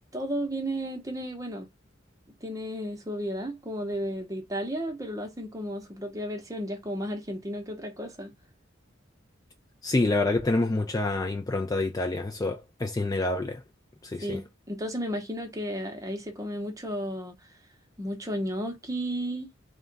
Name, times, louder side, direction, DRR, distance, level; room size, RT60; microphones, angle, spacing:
voice 1, 0.1-1.7 2.4-8.3 14.2-17.4 18.0-19.5, equal, 15° right, 0.8 m, -33 dB
voice 2, 9.8-13.6 14.0-14.4, left 2 dB, 20° left, 0.3 m, -27 dB
3.6 x 2.2 x 3.8 m
head